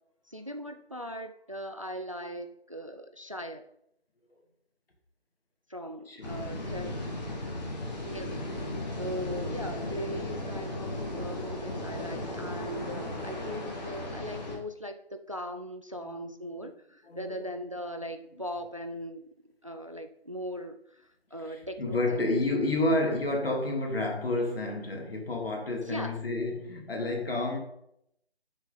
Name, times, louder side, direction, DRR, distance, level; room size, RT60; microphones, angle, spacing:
voice 1, 0.3-3.7 5.7-7.0 8.0-8.6 8.9-22.3 25.9-26.2, equal, 30° right, 0.4 m, -39 dB
voice 2, 6.1-6.7 16.0-16.3 17.0-17.5 21.5-27.6, left 2 dB, 60° left, 2.5 m, -30 dB
sound 1, 6.2-14.6, left 1 dB, 40° left, 2.0 m, -36 dB
10.5 x 6.5 x 3.8 m
figure-of-eight pair, 160°, 32 cm